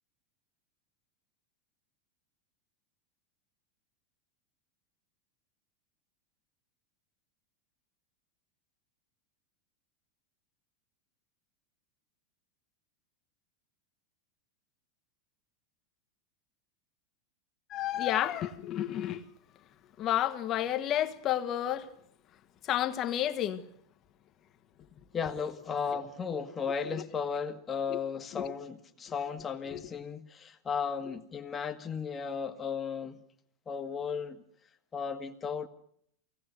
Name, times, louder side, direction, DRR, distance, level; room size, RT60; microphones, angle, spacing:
voice 1, 17.7-19.2 20.0-21.9 22.6-23.7 27.9-28.0 28.3-28.5 29.7-29.8, left 12 dB, 35° left, 1.5 m, -30 dB
voice 2, 25.1-33.2 33.6-34.4 34.9-35.7, left 6 dB, 20° left, 1.7 m, -35 dB
23.5 x 18.0 x 8.2 m
supercardioid pair, 130°, 0 cm